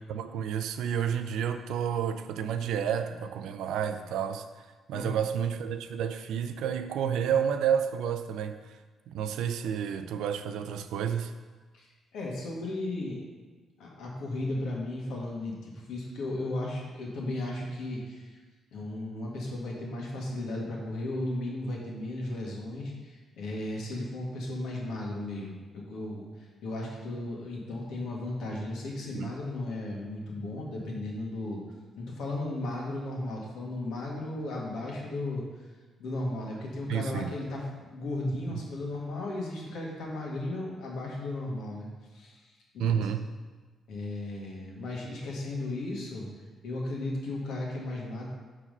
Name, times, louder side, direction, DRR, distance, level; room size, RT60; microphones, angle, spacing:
voice 1, 0.1-4.4 4.9-8.7 9.1-11.3 29.1-29.3 36.9-37.3 38.5-38.6 42.8-43.2, right 8 dB, 85° right, 9 dB, 0.4 m, -30 dB
voice 2, 4.9-5.3 11.7-13.2 13.8-18.4 18.7-26.2 26.6-31.6 32.0-35.4 36.0-41.9 42.1-43.1 43.9-46.3 46.6-48.3, left 2 dB, 80° left, -2 dB, 1.7 m, -35 dB
5.6 x 4.9 x 5.4 m, 1.3 s
cardioid pair, 90°, 0 cm